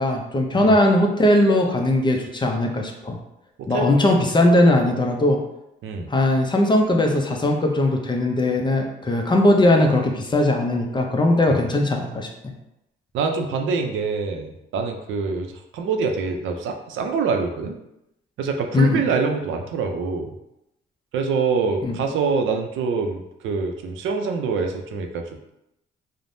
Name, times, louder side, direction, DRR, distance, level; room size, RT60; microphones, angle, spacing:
voice 1, 0.0-3.2 3.7-5.4 6.1-12.5 18.7-19.0 21.8-22.0, left 1 dB, 25° left, 2 dB, 0.5 m, -19 dB
voice 2, 5.8-6.1 11.5-11.6 13.1-17.8 18.4-20.3 21.1-25.2, right 5 dB, 80° right, 4 dB, 0.4 m, -25 dB
3.2 x 2.0 x 2.6 m, 0.85 s
cardioid pair, 90°, 20 cm